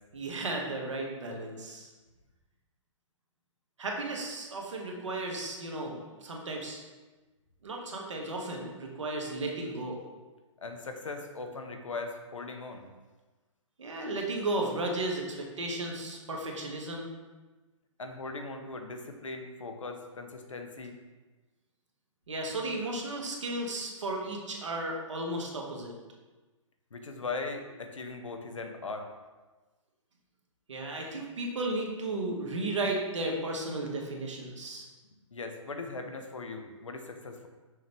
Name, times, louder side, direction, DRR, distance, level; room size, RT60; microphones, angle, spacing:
voice 1, 0.1-1.9 3.8-6.8 7.6-10.0 13.8-17.1 22.3-25.9 30.7-34.9, right 2 dB, 65° right, 0 dB, 1.3 m, -34 dB
voice 2, 10.6-12.9 18.0-20.9 26.9-29.1 35.3-37.5, left 3 dB, 70° left, 4 dB, 0.8 m, -39 dB
6.3 x 5.1 x 3.0 m, 1.2 s
figure-of-eight pair, 120°, 17 cm